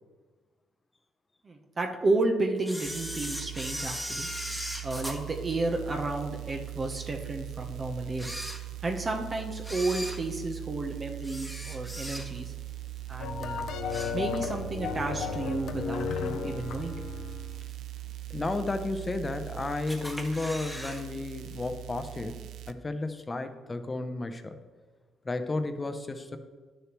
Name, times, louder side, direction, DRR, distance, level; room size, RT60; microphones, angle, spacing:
voice 1, 1.4-4.3 4.8-8.3 8.8-12.5 13.1-13.7 14.1-17.0, right 2 dB, 35° right, 3 dB, 0.9 m, -32 dB
Camera, 2.6-6.2 6.7-6.8 7.5-7.6 8.1-9.1 9.6-12.6 12.9-13.2 13.6-14.6 15.0-15.1 16.0-16.1 16.7-17.1 17.5-17.6 17.8-17.9 18.1-18.2 18.9-19.5 19.9-21.0 21.3-21.4 21.7-21.8, equal, ahead, 1.3 m, -38 dB
sound 1, 2.8-22.7, right 15 dB, 80° right, 0.4 m, -41 dB
sound 2, 13.2-17.6, left 7 dB, 80° left, 0.6 m, -34 dB
voice 2, 18.3-24.5 25.2-26.4, left 2 dB, 25° left, 8 dB, 0.8 m, -33 dB
10.5 x 6.7 x 3.1 m, 1.4 s
cardioid pair, 90°, 0 cm